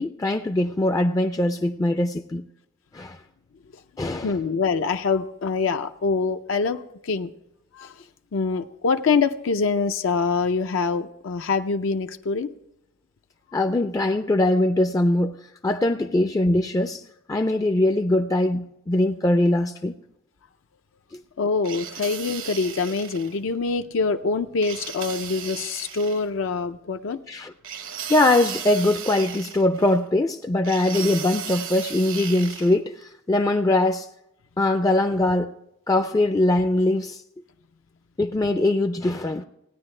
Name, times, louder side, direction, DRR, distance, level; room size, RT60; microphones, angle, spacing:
voice 1, 0.0-2.4 2.9-3.2 4.0-4.3 13.5-15.3 15.6-17.0 17.3-19.9 21.1-21.2 27.3-27.5 28.1-34.1 34.6-35.5 35.9-37.2 38.2-39.4, left 1 dB, 15° left, 0.3 m, -22 dB
voice 2, 4.2-7.3 7.7-8.0 8.3-12.5 21.4-27.2, left 4 dB, 75° left, 0.5 m, -25 dB
sound 1, 21.6-23.4 24.6-26.3 27.6-30.0 30.6-32.8, right 8 dB, 80° right, 1.0 m, -36 dB
17.0 x 9.7 x 3.2 m
head